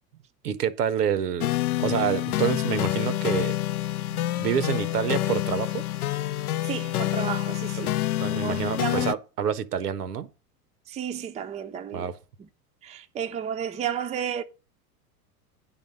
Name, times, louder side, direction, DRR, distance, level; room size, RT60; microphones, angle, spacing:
voice 1, 0.4-1.5 1.8-3.6 4.1-5.8 8.2-10.3 11.9-12.2, right 8 dB, 75° right, 0.9 m, -27 dB
sound 1, 1.4-9.1, left 14 dB, 70° left, 0.6 m, -27 dB
voice 2, 6.6-7.9 8.3-9.1 10.9-12.1 12.4-12.5 12.8-14.4, right 8 dB, 15° right, 0.5 m, -32 dB
10.0 x 4.1 x 6.7 m
figure-of-eight pair, 85°, 47 cm